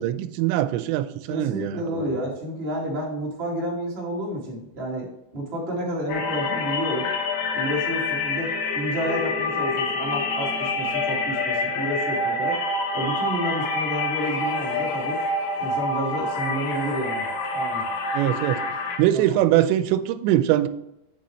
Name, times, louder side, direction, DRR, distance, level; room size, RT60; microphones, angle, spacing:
voice 1, 0.0-2.0 18.1-18.6 19.0-20.7, right 13 dB, 90° right, 12 dB, 2.8 m, -22 dB
voice 2, 1.3-5.1 5.3-7.1 7.5-12.6 12.9-15.2 15.6-17.3 17.5-17.9 19.1-19.2, right 1 dB, 25° right, -3 dB, 1.3 m, -30 dB
sound 1, 6.1-19.0, left 3 dB, 80° left, 3.2 m, -27 dB
8.8 x 7.5 x 3.1 m, 0.84 s
omnidirectional pair, 5.0 m